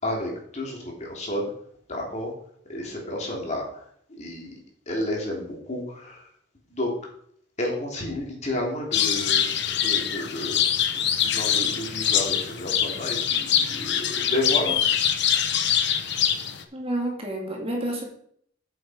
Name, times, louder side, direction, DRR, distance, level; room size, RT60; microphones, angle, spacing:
voice 1, 0.0-1.5 1.9-2.3 2.7-4.5 4.9-6.3 6.7-6.9 7.6-10.7 10.9-14.8, left 1 dB, 35° left, -2 dB, 3.0 m, -31 dB
sound 1, 8.9-16.6, left 9 dB, 60° left, 0.9 m, -24 dB
voice 2, 16.7-18.0, right 1 dB, 30° right, 0 dB, 2.1 m, -29 dB
8.1 x 7.5 x 5.0 m, 0.65 s
head